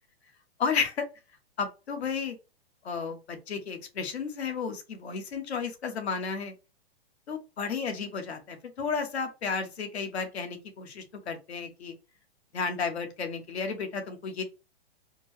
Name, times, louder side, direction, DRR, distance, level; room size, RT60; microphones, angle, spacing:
voice 1, 0.6-1.0 1.6-2.4 2.8-6.5 7.3-11.9 12.5-14.4, left 5 dB, 85° left, 5 dB, 1.3 m, -33 dB
4.3 x 2.1 x 3.1 m, 0.28 s
hypercardioid pair, 155°, 32 cm